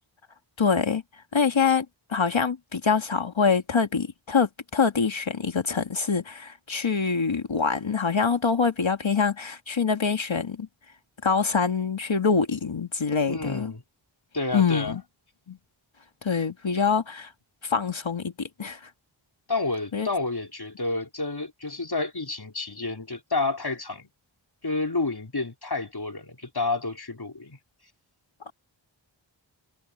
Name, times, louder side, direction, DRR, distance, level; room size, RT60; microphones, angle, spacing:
voice 1, 0.6-1.0 1.3-10.7 11.2-13.7 14.5-15.0 15.5-15.6 16.2-17.3 17.6-18.8 19.9-20.1, left 5 dB, 80° left, 1.7 m, -25 dB
voice 2, 13.3-13.8 14.3-15.0 19.5-24.1 24.6-27.6, left 3 dB, 55° left, 4.2 m, -30 dB
wide cardioid pair, 40°, 46 cm